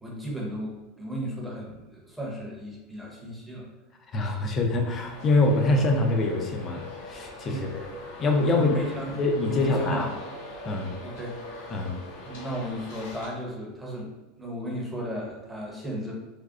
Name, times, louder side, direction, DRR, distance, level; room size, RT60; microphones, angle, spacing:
voice 1, 0.0-3.7 7.5-7.6 8.5-9.2 9.5-10.1 11.0-11.4 12.3-14.1 14.4-16.1, right 1 dB, 5° right, -2 dB, 0.9 m, -35 dB
voice 2, 4.1-7.9 8.2-8.7 9.2-10.1 10.6-10.9 11.7-11.9, left 2 dB, 30° left, 2 dB, 0.6 m, -24 dB
Traffic noise roadway noise, 5.0-13.3, left 1 dB, 80° left, 1.3 m, -42 dB
3.5 x 2.3 x 3.7 m, 1.2 s
supercardioid pair, 135°, 0 cm